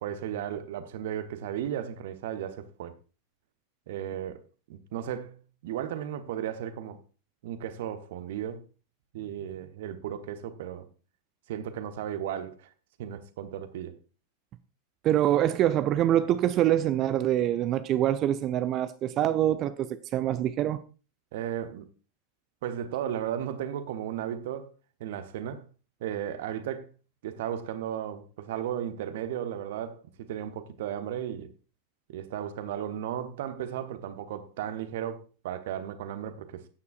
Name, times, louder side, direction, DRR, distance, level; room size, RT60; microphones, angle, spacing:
voice 1, 0.0-2.9 3.9-4.4 4.7-7.0 7.4-8.6 9.1-10.9 11.5-12.7 13.0-14.0 21.3-21.9 22.6-24.7 25.0-25.7 26.0-26.9 27.2-31.5 32.1-36.6, right 10 dB, 55° right, 1.1 m, -35 dB
voice 2, 15.0-20.8, right 12 dB, 35° right, 0.5 m, -25 dB
14.5 x 9.4 x 2.5 m
figure-of-eight pair, 90°, 0 cm